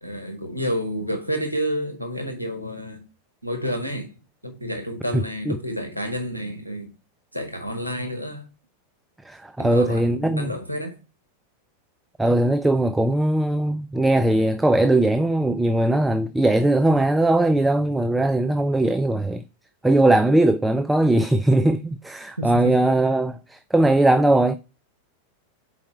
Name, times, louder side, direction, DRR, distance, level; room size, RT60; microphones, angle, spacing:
voice 1, 0.0-3.0 3.4-4.1 4.4-6.9 7.3-8.4 9.6-11.0 22.4-22.9, equal, 85° right, 1.0 m, -29 dB
voice 2, 5.1-5.6 9.2-10.5 12.2-19.4 19.8-24.6, right 1 dB, 5° right, 0.3 m, -20 dB
4.8 x 4.4 x 5.6 m
figure-of-eight pair, 90°, 0 cm